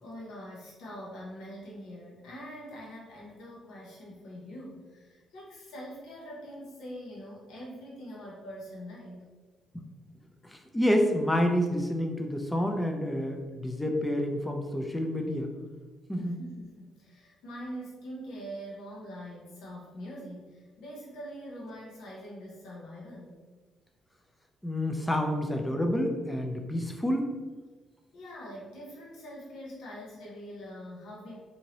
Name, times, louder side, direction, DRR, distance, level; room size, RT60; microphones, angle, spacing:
voice 1, 0.0-9.3 16.1-23.4 28.1-31.4, equal, 85° left, -5 dB, 0.8 m, -44 dB
voice 2, 10.4-15.5 16.1-16.4 24.6-27.3, equal, 10° left, 3 dB, 0.4 m, -28 dB
2.8 x 2.7 x 2.9 m, 1.3 s
cardioid pair, 90°, 0 cm